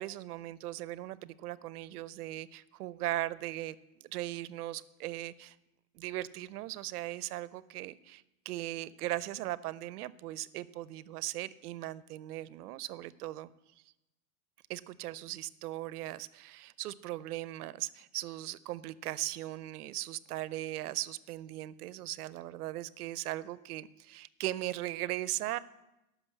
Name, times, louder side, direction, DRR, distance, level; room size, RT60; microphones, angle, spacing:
voice 1, 0.0-5.6 5.9-13.5 14.7-25.6, right 15 dB, 90° right, 18 dB, 0.6 m, -38 dB
11.0 x 6.0 x 7.1 m, 0.94 s
supercardioid pair, 125°, 44 cm